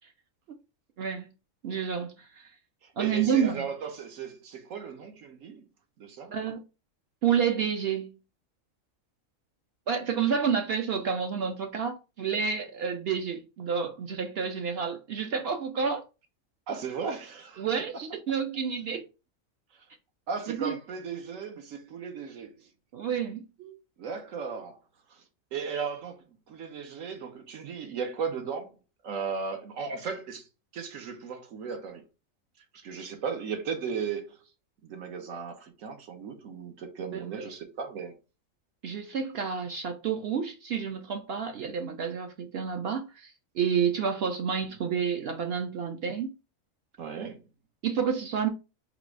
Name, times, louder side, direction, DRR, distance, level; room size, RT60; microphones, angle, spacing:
voice 1, 1.0-1.3 1.6-2.5 3.0-3.7 6.3-6.6 7.2-8.2 9.9-16.0 17.6-19.0 20.5-20.8 22.9-23.8 37.1-37.5 38.8-46.3 47.8-48.5, right 7 dB, 60° right, 0.7 m, -29 dB
voice 2, 2.8-5.6 6.0-6.4 16.7-17.7 17.9-18.0 20.3-22.7 24.0-24.8 25.1-25.2 25.5-28.8 29.0-30.5 30.7-32.0 32.7-34.4 34.8-38.1 47.0-47.4, right 6 dB, 80° right, 1.2 m, -36 dB
3.9 x 2.4 x 4.6 m
omnidirectional pair, 1.4 m